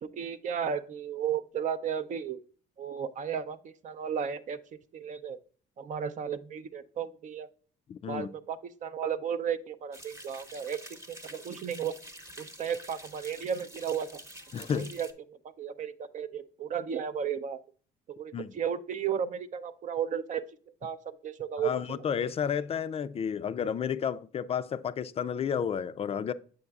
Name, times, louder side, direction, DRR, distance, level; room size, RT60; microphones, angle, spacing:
voice 1, 0.0-2.4 2.8-5.4 5.8-7.5 8.1-10.8 11.1-11.9 12.4-14.2 14.7-17.6 18.1-20.4 20.8-21.0 21.2-22.0, right 8 dB, 50° right, 0.6 m, -34 dB
voice 2, 7.9-8.3 14.5-14.9 18.3-18.5 21.6-26.3, left 7 dB, 35° left, 0.4 m, -31 dB
sound 1, 9.9-15.1, equal, 15° right, 1.0 m, -48 dB
7.7 x 6.6 x 2.4 m
cardioid pair, 110°, 17 cm